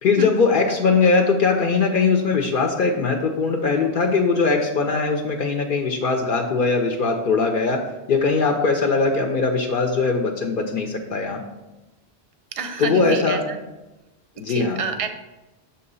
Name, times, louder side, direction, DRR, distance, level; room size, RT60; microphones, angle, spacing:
voice 1, 0.0-7.8 8.1-11.4 12.8-13.4 14.4-14.8, left 4 dB, 60° left, 3 dB, 0.7 m, -20 dB
voice 2, 12.6-13.6 14.5-15.1, right 5 dB, 45° right, 7 dB, 0.5 m, -28 dB
7.1 x 2.8 x 5.4 m, 1.0 s
omnidirectional pair, 1.1 m